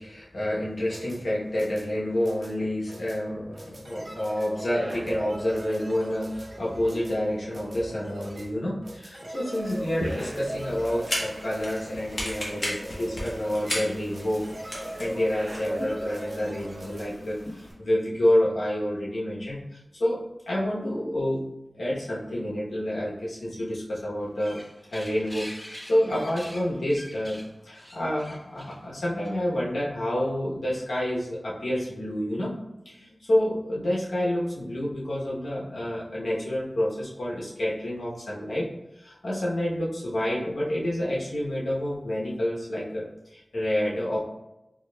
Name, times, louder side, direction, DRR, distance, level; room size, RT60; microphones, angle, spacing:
voice 1, 0.0-14.4 14.7-19.6 20.0-21.4 21.7-24.6 24.9-27.4 27.6-32.6 32.8-38.7 39.0-43.0 43.3-44.2, left 1 dB, 85° left, -6 dB, 1.1 m, -28 dB
sound 1, 0.6-17.1, right 1 dB, 40° right, 0.6 m, -38 dB
sound 2, 9.6-17.7, left 1 dB, 45° left, 1.1 m, -36 dB
sound 3, 24.2-29.6, equal, 10° left, 0.5 m, -45 dB
4.5 x 2.9 x 2.3 m, 0.90 s
wide cardioid pair, 80°, 0 cm